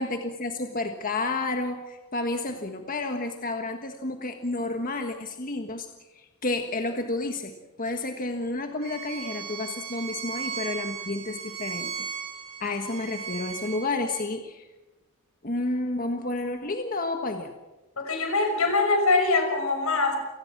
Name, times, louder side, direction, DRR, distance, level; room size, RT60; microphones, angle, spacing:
voice 1, 0.0-5.9 6.1-12.1 12.6-14.7 15.4-17.5, left 2 dB, 40° left, 5 dB, 1.6 m, -31 dB
Bowed string instrument, 8.8-14.2, right 6 dB, 80° right, 4.1 m, -36 dB
voice 2, 18.0-20.2, left 3 dB, 85° left, 5 dB, 5.8 m, -23 dB
28.5 x 19.5 x 6.1 m, 1.1 s
head